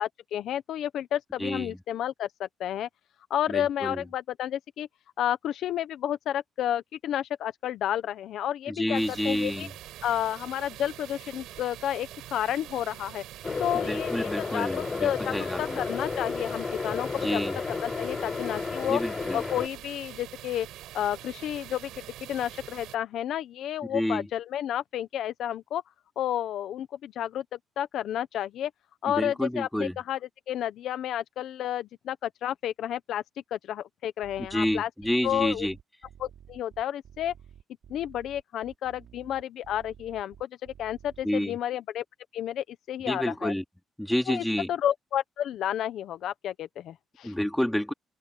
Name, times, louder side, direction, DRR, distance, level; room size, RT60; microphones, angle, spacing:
voice 1, 0.0-2.9 3.3-4.9 5.2-9.0 9.2-9.7 10.0-13.2 13.6-17.4 17.8-19.0 19.3-20.7 20.9-22.0 22.3-25.8 26.2-27.4 27.8-28.7 29.0-30.2 30.5-33.2 33.5-34.9 35.2-35.7 36.2-37.3 37.9-42.0 42.3-43.5 44.3-47.3, left 11 dB, 75° left, 1.1 m, -31 dB
voice 2, 1.4-1.8 3.5-4.0 8.7-9.7 13.7-15.8 17.2-17.5 18.9-19.4 23.9-24.3 29.1-30.0 34.5-35.7 41.2-41.6 43.1-43.6 44.0-44.7 47.2-47.9, left 1 dB, 5° left, 3.3 m, -29 dB
sound 1, 8.9-23.0, right 14 dB, 90° right, 5.3 m, -45 dB
sound 2, 13.4-19.7, left 4 dB, 35° left, 0.5 m, -32 dB
sound 3, 34.2-41.2, right 9 dB, 65° right, 4.5 m, -52 dB
cardioid pair, 90°, 0 cm